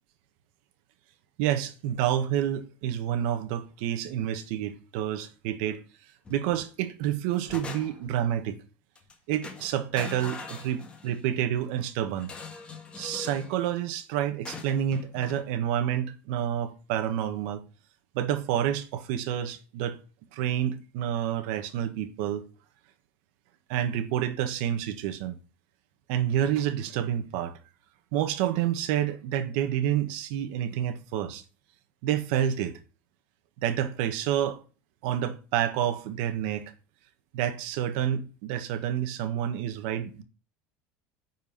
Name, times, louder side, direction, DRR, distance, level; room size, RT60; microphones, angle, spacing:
voice 1, 1.4-5.8 6.3-8.6 9.3-12.3 13.0-17.6 18.1-20.0 20.3-22.4 23.7-25.3 26.1-27.5 28.1-31.4 32.0-32.8 33.6-34.6 35.0-36.7 37.3-40.2, right 10 dB, 70° right, 1.5 m, -29 dB
sound 1, 6.2-6.7 7.1-8.2 8.9-9.1 9.4-11.3 12.2-13.5 14.4-15.4, left 4 dB, 20° left, 1.7 m, -42 dB
9.7 x 4.8 x 5.8 m
supercardioid pair, 145°, 6 cm